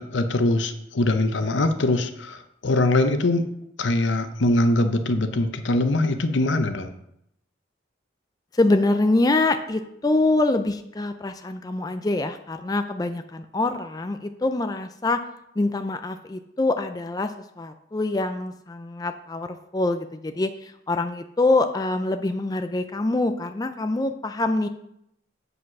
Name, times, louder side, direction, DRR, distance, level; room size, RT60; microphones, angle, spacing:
voice 1, 0.0-3.5 3.8-6.9, left 2 dB, 80° left, 9 dB, 0.8 m, -22 dB
voice 2, 8.5-15.2 15.6-24.7, left 2 dB, 20° left, 8 dB, 0.4 m, -25 dB
8.1 x 5.1 x 5.9 m, 0.77 s
head